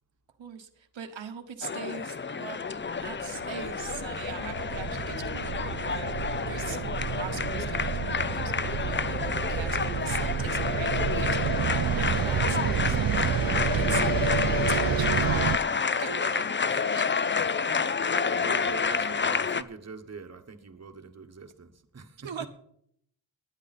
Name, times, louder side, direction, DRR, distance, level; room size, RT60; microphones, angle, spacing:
voice 1, 0.4-2.6 3.0-17.8 22.2-22.5, right 7 dB, 80° right, 6 dB, 1.2 m, -42 dB
sound 1, 1.6-19.6, left 5 dB, 25° left, 0.5 m, -29 dB
sound 2, 3.0-15.6, right 8 dB, 50° right, 0.6 m, -30 dB
voice 2, 18.3-22.5, right 4 dB, 35° right, 6 dB, 1.2 m, -43 dB
18.0 x 9.8 x 4.2 m, 0.70 s
wide cardioid pair, 90°, 45 cm